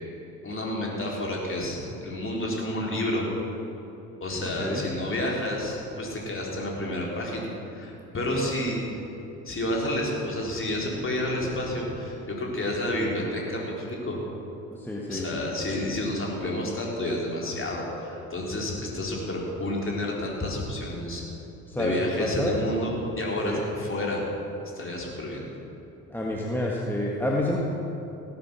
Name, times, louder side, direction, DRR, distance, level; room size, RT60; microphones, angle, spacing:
voice 1, 0.4-3.2 4.2-8.8 9.5-14.2 15.1-21.2 21.7-24.2 24.8-25.5, left 1 dB, 30° left, -2 dB, 3.9 m, -30 dB
voice 2, 14.7-15.4 21.7-22.5 23.4-23.6 26.1-27.6, left 1 dB, 5° left, -3 dB, 1.7 m, -28 dB
17.0 x 8.9 x 6.2 m, 3.0 s
figure-of-eight pair, 50°, 43 cm